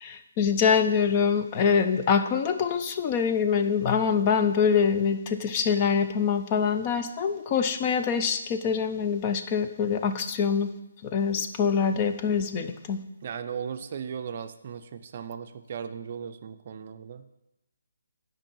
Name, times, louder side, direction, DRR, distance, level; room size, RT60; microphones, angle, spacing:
voice 1, 0.0-10.7 11.0-13.0, left 6 dB, 25° left, 7 dB, 0.5 m, -25 dB
voice 2, 13.2-17.3, right 7 dB, 40° right, 9 dB, 0.5 m, -37 dB
8.9 x 5.2 x 5.5 m, 0.95 s
figure-of-eight pair, 145°, 0 cm